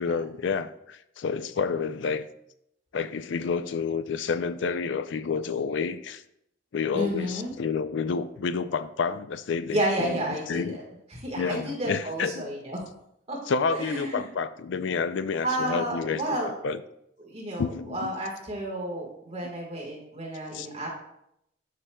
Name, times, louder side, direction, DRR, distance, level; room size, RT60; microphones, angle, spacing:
voice 1, 0.0-2.3 2.9-6.2 6.7-10.8 11.3-12.5 13.5-16.8 17.6-18.1 20.5-20.7, left 5 dB, 70° left, 13 dB, 0.4 m, -29 dB
voice 2, 6.9-7.5 9.7-10.8 11.1-12.8 13.3-13.4 13.8-14.3 15.4-16.6 17.2-20.9, right 1 dB, 30° right, -2 dB, 1.5 m, -31 dB
11.0 x 4.9 x 2.3 m, 0.77 s
head